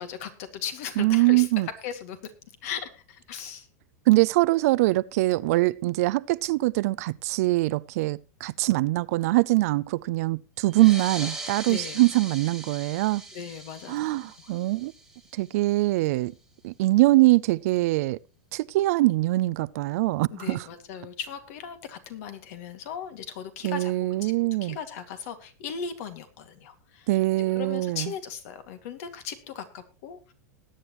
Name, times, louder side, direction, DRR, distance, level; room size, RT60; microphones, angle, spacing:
voice 1, 0.0-1.5 1.8-2.3 2.6-3.7 11.7-12.1 13.3-14.0 14.4-14.5 20.3-23.9 24.2-24.3 24.6-27.2 27.5-30.3, left 7 dB, 60° left, 2.3 m, -38 dB
voice 2, 1.0-1.7 4.1-13.2 13.9-14.9 15.3-16.3 16.6-18.2 18.5-20.6 23.6-24.8 27.1-28.1, right 19 dB, 60° right, 0.5 m, -23 dB
sound 1, 10.7-15.8, right 2 dB, 5° right, 1.6 m, -40 dB
20.5 x 9.0 x 3.1 m
supercardioid pair, 135°, 9 cm